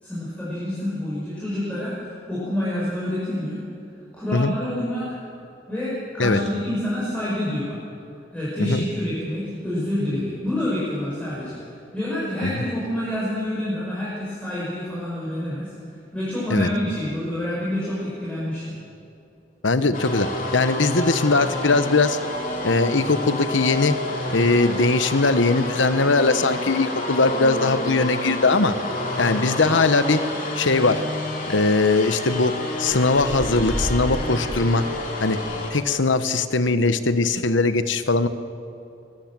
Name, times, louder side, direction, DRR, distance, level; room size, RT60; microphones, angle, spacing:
voice 1, 0.0-3.6 4.1-5.1 5.7-7.8 8.3-11.6 11.9-15.7 16.1-18.7, left 1 dB, 5° left, -9 dB, 5.9 m, -27 dB
voice 2, 19.6-22.2 22.6-24.0 24.3-28.8 29.2-30.2 30.6-31.0 31.5-32.5 32.8-34.8 35.2-35.4 35.7-38.3, left 3 dB, 85° left, 11 dB, 1.1 m, -20 dB
sound 1, 19.9-35.7, left 1 dB, 45° left, 3.2 m, -29 dB
23.0 x 19.5 x 7.7 m, 2.6 s
head